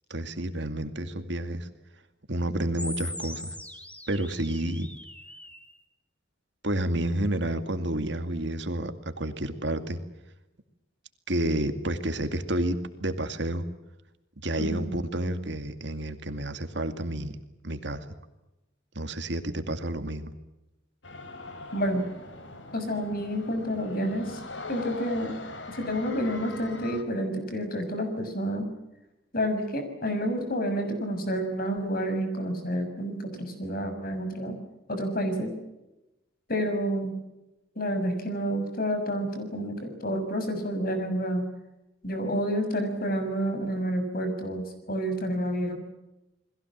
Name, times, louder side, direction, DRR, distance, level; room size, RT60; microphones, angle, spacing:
voice 1, 0.1-1.7 2.3-3.6 4.1-4.9 6.6-10.0 11.3-13.7 14.4-17.4 17.6-18.1 18.9-20.3, right 1 dB, 60° right, 8 dB, 2.3 m, -30 dB
sound 1, 2.8-5.8, left 1 dB, 5° left, 2.5 m, -41 dB
sound 2, 21.0-27.0, left 3 dB, 70° left, 3.9 m, -41 dB
voice 2, 21.7-22.0 22.7-24.4 24.7-25.3 25.7-28.7 29.3-34.6 34.9-35.5 36.5-37.1 37.7-41.5 42.0-45.7, equal, 50° left, 7 dB, 6.4 m, -29 dB
29.5 x 21.5 x 7.4 m, 0.96 s
head